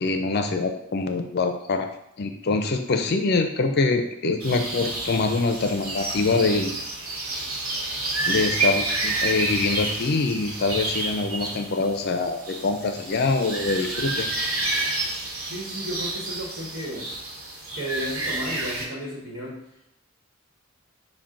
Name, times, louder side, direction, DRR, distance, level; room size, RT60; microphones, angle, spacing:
voice 1, 0.0-1.9 2.2-6.7 8.3-14.3, left 3 dB, 50° left, 6 dB, 0.5 m, -24 dB
sound 1, 4.4-18.9, right 2 dB, 85° right, 1.1 m, -29 dB
voice 2, 15.5-17.1 17.7-19.9, equal, 55° right, -6 dB, 1.2 m, -34 dB
5.9 x 2.2 x 3.7 m, 0.78 s
head